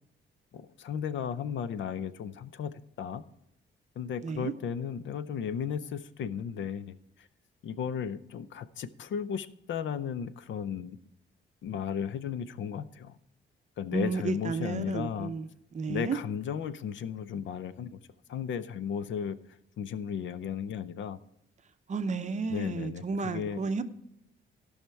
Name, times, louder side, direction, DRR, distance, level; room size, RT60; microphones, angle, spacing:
voice 1, 0.5-2.7 3.0-3.2 4.0-7.3 7.6-11.0 11.6-13.2 13.8-15.3 15.9-18.0 18.3-19.4 19.8-21.2 22.5-23.6, left 7 dB, 70° left, 0.6 m, -35 dB
voice 2, 13.9-16.2 21.9-23.8, right 4 dB, 35° right, 0.7 m, -32 dB
15.5 x 5.7 x 4.5 m
wide cardioid pair, 145°, 20 cm